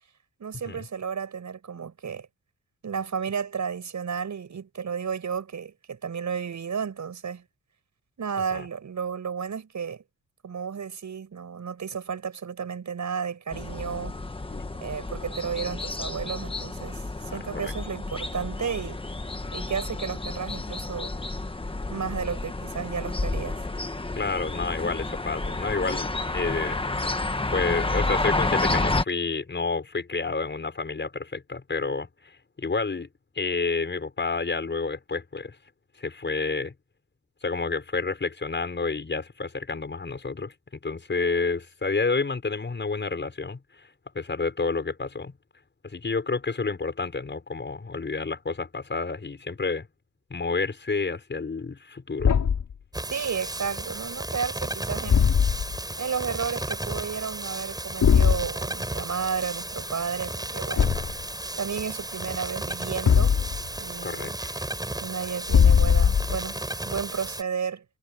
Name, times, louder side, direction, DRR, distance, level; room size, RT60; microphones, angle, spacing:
voice 1, 0.4-2.3 2.8-7.4 8.2-10.0 10.4-14.2 14.8-19.0 19.5-21.1 21.9-23.6 53.1-55.3 56.0-60.8 61.6-63.4 63.8-64.4 65.0-66.6 66.8-67.8, right 6 dB, 65° right, 7.7 m, -32 dB
sound 1, 13.5-29.0, left 2 dB, 15° left, 1.3 m, -30 dB
voice 2, 17.3-17.7 24.2-26.8 27.5-33.1 33.4-35.6 36.0-36.7 37.4-40.5 40.8-43.9 44.1-45.3 45.8-49.9 50.3-52.4 60.8-61.1 64.0-64.6, left 4 dB, 35° left, 6.2 m, -29 dB
Thump thud, 52.2-52.7 55.1-55.8 58.0-58.5 60.8-61.2 63.1-63.7 65.5-66.5, left 7 dB, 75° left, 4.6 m, -20 dB
sound 2, 52.9-67.4, right 1 dB, 10° right, 7.0 m, -34 dB
wide cardioid pair, 130°, 31 cm